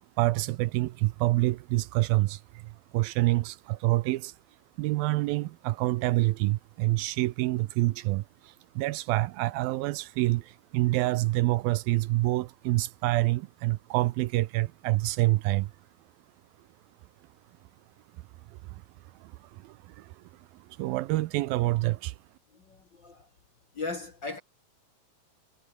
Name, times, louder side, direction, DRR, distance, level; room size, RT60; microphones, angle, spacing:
voice 1, 0.2-4.3 4.8-15.7 18.7-18.8 19.2-19.3 19.6-20.1 20.8-22.1, right 18 dB, 80° right, 2.4 m, -27 dB
voice 2, 22.5-23.3 23.7-24.4, left 3 dB, 40° left, 1.8 m, -37 dB
omnidirectional pair, 4.4 m